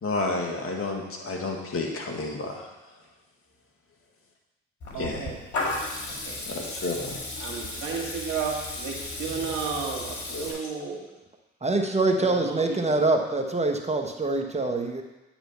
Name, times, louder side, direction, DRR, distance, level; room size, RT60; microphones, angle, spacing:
voice 1, 0.0-2.6 5.0-5.3 6.5-7.2 10.3-10.5, left 3 dB, 45° left, 0 dB, 1.9 m, -31 dB
Water tap faucet / Liquid, 4.8-10.5, left 2 dB, 65° left, 2.3 m, -34 dB
voice 2, 4.9-5.4 6.3-6.4 7.4-11.0 12.2-12.8, right 6 dB, 70° right, -1 dB, 1.9 m, -33 dB
voice 3, 11.6-15.0, right 2 dB, 20° right, 4 dB, 1.1 m, -25 dB
9.4 x 4.4 x 5.6 m, 1.0 s
hypercardioid pair, 50°, 31 cm